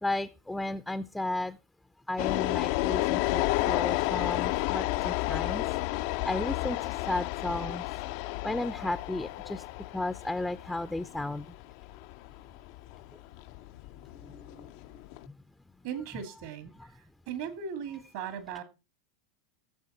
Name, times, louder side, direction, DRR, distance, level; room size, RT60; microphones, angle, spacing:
voice 1, 0.0-1.6 2.1-5.6 6.0-6.8 7.1-7.8 8.4-9.6 9.9-11.5 14.2-14.7, left 2 dB, 5° left, 0.5 m, -34 dB
sound 1, 2.2-15.3, left 18 dB, 60° left, 0.5 m, -31 dB
voice 2, 15.8-16.7 17.3-18.6, right 7 dB, 65° right, 2.3 m, -37 dB
15.5 x 7.1 x 4.3 m
hypercardioid pair, 105°, 0 cm